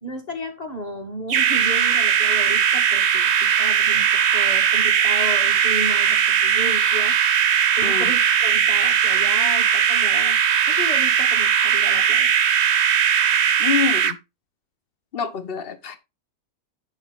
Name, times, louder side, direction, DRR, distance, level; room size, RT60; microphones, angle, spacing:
voice 1, 0.0-7.1 7.8-10.4 10.7-12.3, equal, 25° left, 2.2 m, -33 dB
sound 1, 1.3-14.1, right 8 dB, 55° right, 1.0 m, -19 dB
voice 2, 7.8-8.1 13.6-14.2 15.1-16.0, left 7 dB, 45° left, 1.2 m, -26 dB
10.5 x 5.4 x 4.0 m
omnidirectional pair, 1.5 m